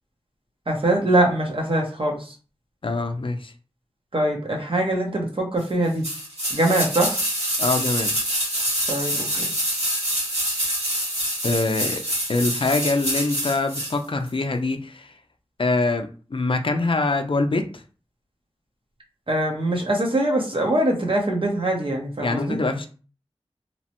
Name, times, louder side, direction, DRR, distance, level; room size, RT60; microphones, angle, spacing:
voice 1, 0.7-2.3 4.1-6.0 6.5-7.2 8.9-9.5 19.3-22.6, right 1 dB, 55° right, 0 dB, 0.8 m, -23 dB
voice 2, 2.8-3.5 7.6-8.1 11.4-12.0 12.3-15.1 15.6-17.6 22.2-22.9, left 3 dB, 55° left, 6 dB, 0.4 m, -24 dB
sound 1, 6.0-14.0 14.3-14.4, equal, 80° right, 1.4 m, -26 dB
2.9 x 2.0 x 2.9 m, 0.37 s
wide cardioid pair, 55°, 11 cm